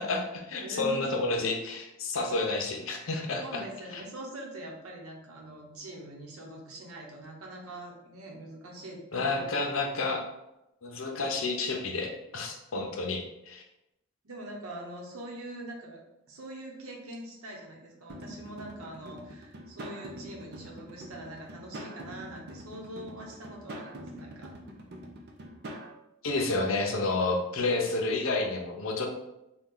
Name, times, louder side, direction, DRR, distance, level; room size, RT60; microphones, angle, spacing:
voice 1, 0.0-3.6 3.9-4.0 9.1-10.2 10.8-13.6 26.2-29.1, left 3 dB, 70° left, 2 dB, 0.7 m, -30 dB
voice 2, 0.6-1.0 3.4-9.8 14.2-16.0 16.3-24.5, right 1 dB, 85° right, -1 dB, 1.0 m, -43 dB
sound 1, 18.1-25.9, equal, 50° right, 0.5 m, -44 dB
4.2 x 2.3 x 3.8 m, 0.89 s
head